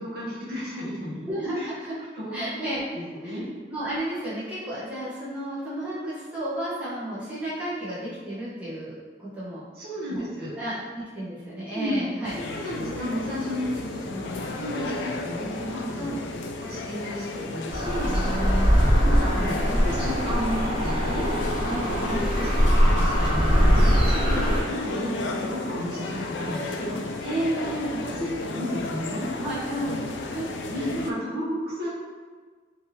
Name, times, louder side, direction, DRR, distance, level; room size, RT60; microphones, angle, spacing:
voice 1, 0.0-1.2 1.6-1.7 2.1-2.4 2.9-3.4 9.7-10.5 11.7-12.0 12.3-18.1 18.9-22.0 22.4-24.0 24.2-29.3 30.7-31.9, equal, 60° right, -7 dB, 0.9 m, -33 dB
voice 2, 1.3-2.0 2.3-2.8 3.2-3.4 3.7-8.9 9.2-9.6 10.1-10.2 10.6-12.7 16.0-16.2 18.0-18.8 21.6-22.3 27.2-28.0 29.4-30.0 30.3-30.5 30.7-30.9, right 1 dB, 10° right, -11 dB, 0.9 m, -32 dB
sound 1, 12.2-31.1, left 3 dB, 80° left, 0.3 m, -34 dB
sound 2, 17.7-24.6, equal, 30° right, 1.0 m, -22 dB
3.4 x 2.6 x 2.7 m, 1.5 s
head